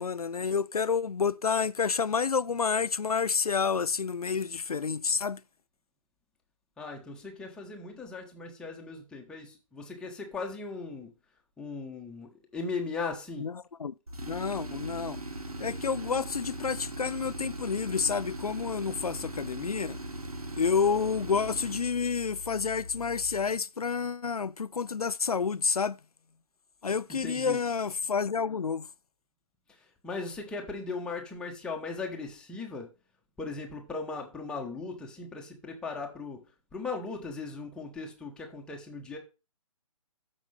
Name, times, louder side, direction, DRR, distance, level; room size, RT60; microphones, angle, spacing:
voice 1, 0.0-5.4 13.4-13.5 13.8-13.9 14.2-15.2 15.6-20.0 20.6-26.0 26.8-28.9, left 5 dB, 80° left, 0.4 m, -29 dB
voice 2, 6.8-11.1 11.6-13.5 27.1-27.6 29.7-32.9 33.4-36.4 36.7-39.2, left 4 dB, 5° left, 1.1 m, -38 dB
Tools, 14.1-23.5, right 1 dB, 80° right, 1.3 m, -40 dB
13.5 x 5.4 x 3.4 m
figure-of-eight pair, 140°, 19 cm